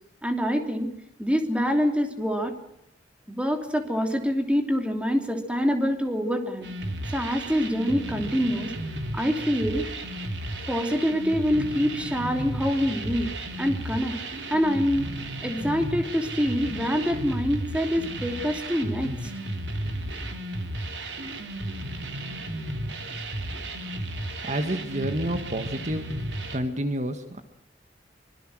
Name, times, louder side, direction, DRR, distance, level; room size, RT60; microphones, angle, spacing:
voice 1, 0.2-0.9 1.2-2.5 3.3-6.7 7.1-8.7 9.1-9.9 10.7-13.3 13.6-14.2 14.5-15.1 15.4-19.1, equal, 5° right, 5 dB, 3.1 m, -25 dB
sound 1, 6.6-26.6, right 1 dB, 85° right, 3.3 m, -34 dB
voice 2, 24.4-27.4, right 1 dB, 40° right, 8 dB, 1.8 m, -30 dB
25.0 x 23.0 x 6.4 m, 0.79 s
head